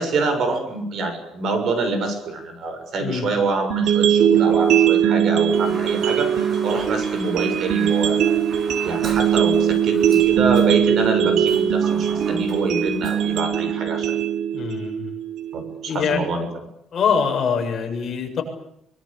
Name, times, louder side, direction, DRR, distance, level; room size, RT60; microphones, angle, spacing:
voice 1, 0.0-8.4 8.8-14.1 15.5-16.5, right 3 dB, 50° right, 8 dB, 6.8 m, -26 dB
sound 1, 3.7-15.7, right 9 dB, 75° right, 3.7 m, -20 dB
Toilet flush, 4.3-13.4, right 3 dB, 35° right, 5.2 m, -39 dB
voice 2, 14.5-15.1 15.9-16.2 16.9-18.4, left 6 dB, 35° left, 2 dB, 7.5 m, -23 dB
25.0 x 23.5 x 8.6 m, 0.75 s
cardioid pair, 170°, 0 cm